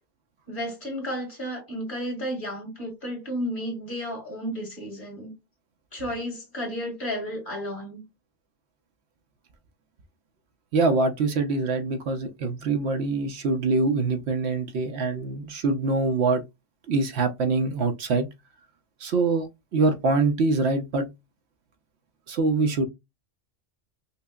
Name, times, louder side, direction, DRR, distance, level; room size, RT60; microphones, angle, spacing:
voice 1, 0.5-5.3 5.9-8.0, equal, 45° left, 1.9 m, -32 dB
voice 2, 10.7-16.4 16.9-18.3 19.0-21.1 22.3-22.9, right 3 dB, 65° right, 0.8 m, -24 dB
5.5 x 2.0 x 2.2 m
omnidirectional pair, 1.2 m